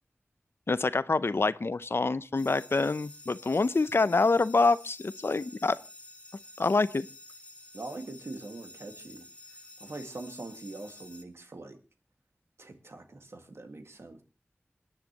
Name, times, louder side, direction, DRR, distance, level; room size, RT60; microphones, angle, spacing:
voice 1, 0.7-5.8 6.6-7.1, left 3 dB, 65° left, 16 dB, 0.6 m, -26 dB
sound 1, 2.3-11.2, left 2 dB, 25° left, 2.1 m, -50 dB
voice 2, 7.7-9.3 9.8-11.8 12.6-14.2, right 2 dB, 90° right, 5 dB, 1.9 m, -43 dB
27.0 x 10.0 x 2.9 m, 0.32 s
wide cardioid pair, 55°, 4 cm